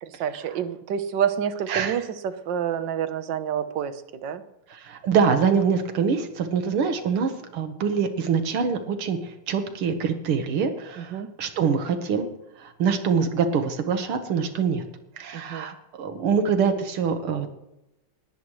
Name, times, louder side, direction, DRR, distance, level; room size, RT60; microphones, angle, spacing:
voice 1, 0.0-4.4 11.0-11.3 15.3-15.7, right 8 dB, 60° right, 10 dB, 1.6 m, -28 dB
voice 2, 1.7-2.0 4.7-12.3 12.6-14.9 15.2-17.5, right 6 dB, 90° right, 7 dB, 2.2 m, -25 dB
19.5 x 17.5 x 3.2 m, 0.90 s
omnidirectional pair, 2.3 m